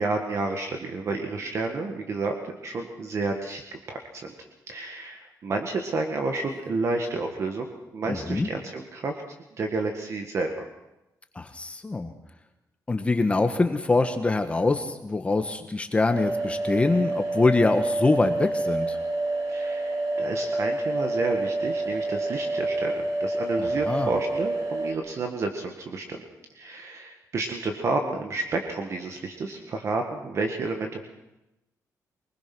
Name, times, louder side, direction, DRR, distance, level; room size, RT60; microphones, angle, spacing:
voice 1, 0.0-4.3 4.7-9.2 9.6-10.7 19.5-26.2 26.6-31.0, right 3 dB, 50° right, 4 dB, 1.9 m, -30 dB
voice 2, 8.1-8.5 11.3-12.1 12.9-19.0 23.6-24.1, left 3 dB, 20° left, 7 dB, 1.3 m, -24 dB
sound 1, 16.1-24.9, right 2 dB, 80° right, 3.7 m, -28 dB
24.5 x 20.0 x 6.1 m, 0.95 s
wide cardioid pair, 145°, 6 cm